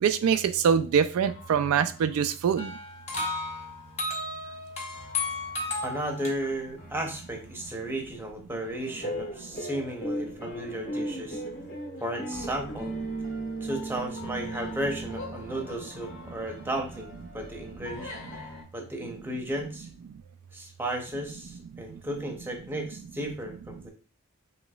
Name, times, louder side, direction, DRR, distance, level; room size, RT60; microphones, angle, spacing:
voice 1, 0.0-2.8 21.7-22.0, right 7 dB, 80° right, 10 dB, 0.3 m, -24 dB
sound 1, 1.2-18.6, left 2 dB, 80° left, 1.5 m, -47 dB
sound 2, 2.6-6.3, left 2 dB, 30° left, 0.9 m, -33 dB
voice 2, 5.8-11.4 12.0-12.9 13.6-18.1 18.7-19.9 20.5-23.9, right 1 dB, 10° right, 2 dB, 0.7 m, -34 dB
sound 3, 9.0-15.5, right 1 dB, 50° left, 1.3 m, -36 dB
5.0 x 3.1 x 2.3 m, 0.37 s
head